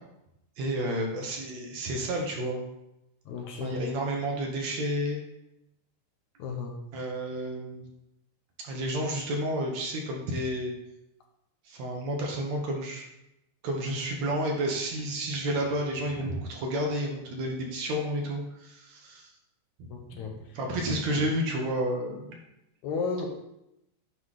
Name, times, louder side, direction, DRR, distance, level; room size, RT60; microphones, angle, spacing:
voice 1, 0.6-2.6 3.6-5.2 6.9-7.8 8.6-10.7 11.7-13.1 13.6-19.3 19.8-22.4, right 1 dB, 65° right, 0 dB, 2.2 m, -31 dB
voice 2, 3.3-3.8 6.4-6.8 19.9-20.4 22.8-23.3, left 5 dB, 70° left, 2 dB, 2.1 m, -33 dB
9.6 x 3.9 x 4.8 m, 0.87 s
omnidirectional pair, 3.7 m